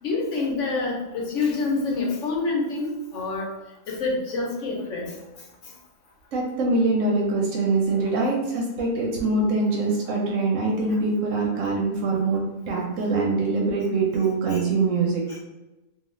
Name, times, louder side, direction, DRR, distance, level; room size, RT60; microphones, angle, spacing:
voice 1, 0.0-3.5 3.9-5.1 7.9-8.1 14.5-14.6 15.3-15.4, left 3 dB, 60° left, -2 dB, 1.0 m, -27 dB
voice 2, 6.3-12.4 12.7-15.2, right 3 dB, 65° right, -1 dB, 0.9 m, -23 dB
2.6 x 2.3 x 3.0 m, 1.0 s
omnidirectional pair, 1.6 m